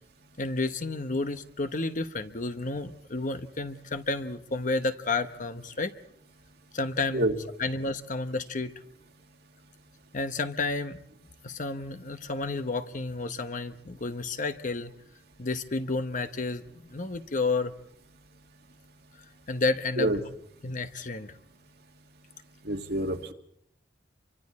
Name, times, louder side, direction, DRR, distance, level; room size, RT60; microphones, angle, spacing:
voice 1, 0.4-5.9 6.7-7.2 7.6-8.7 10.1-11.0 11.4-14.9 15.4-17.7 19.5-20.1 20.6-21.3, left 3 dB, 45° left, 9 dB, 1.1 m, -31 dB
voice 2, 22.6-23.3, right 1 dB, 65° right, 5 dB, 1.8 m, -27 dB
30.0 x 24.5 x 4.3 m, 0.73 s
head